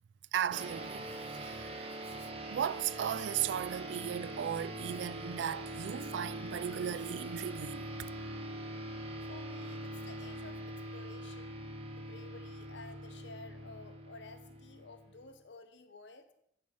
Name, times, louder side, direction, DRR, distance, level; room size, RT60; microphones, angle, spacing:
voice 1, 0.3-1.1 1.4-1.7 2.5-7.8, right 9 dB, 75° right, 0.3 m, -36 dB
sound 1, 0.5-15.3, right 1 dB, 30° right, 1.0 m, -43 dB
voice 2, 9.3-11.6 11.9-16.3, left 3 dB, 80° left, 0.9 m, -53 dB
10.5 x 4.1 x 6.3 m
head